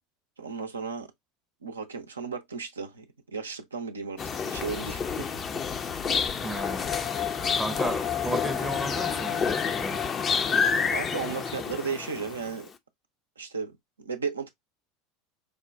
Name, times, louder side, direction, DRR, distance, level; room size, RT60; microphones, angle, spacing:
voice 1, 0.4-1.1 1.6-5.3 10.9-12.7 13.4-14.5, right 5 dB, 85° right, 0.6 m, -35 dB
sound 1, 4.2-12.6, left 6 dB, 35° left, 0.5 m, -29 dB
voice 2, 6.4-6.9 7.6-10.1, right 2 dB, 5° right, 0.6 m, -34 dB
sound 2, 6.5-11.8, left 13 dB, 70° left, 0.7 m, -36 dB
4.9 x 2.2 x 2.3 m
hypercardioid pair, 80°, 0 cm